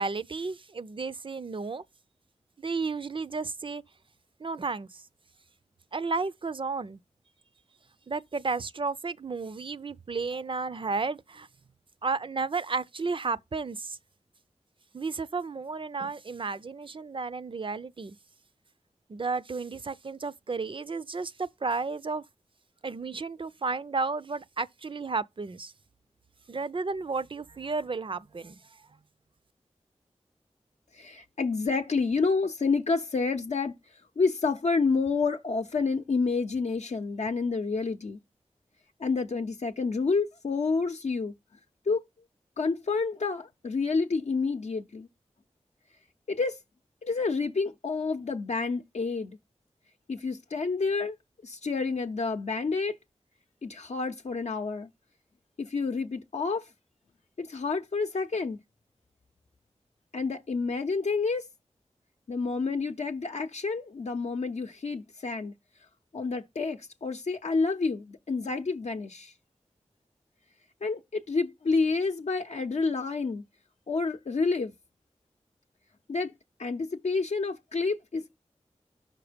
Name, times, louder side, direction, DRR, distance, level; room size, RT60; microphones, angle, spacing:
voice 1, 0.0-1.8 2.6-3.8 4.4-5.0 5.9-7.0 8.1-11.5 12.0-14.0 14.9-18.2 19.1-22.2 22.8-25.7 26.5-28.6, right 4 dB, 45° right, 0.5 m, -32 dB
voice 2, 30.9-33.8 34.2-38.2 39.0-41.3 41.9-42.0 42.6-45.1 46.3-46.6 47.0-49.4 50.1-51.2 51.4-53.0 53.6-54.9 55.6-56.6 57.4-58.6 60.1-61.5 62.3-65.5 66.1-69.3 70.8-73.4 73.9-74.7 76.1-76.3 76.6-78.4, left 4 dB, 70° left, 0.6 m, -29 dB
6.0 x 4.2 x 5.0 m
wide cardioid pair, 55°, 12 cm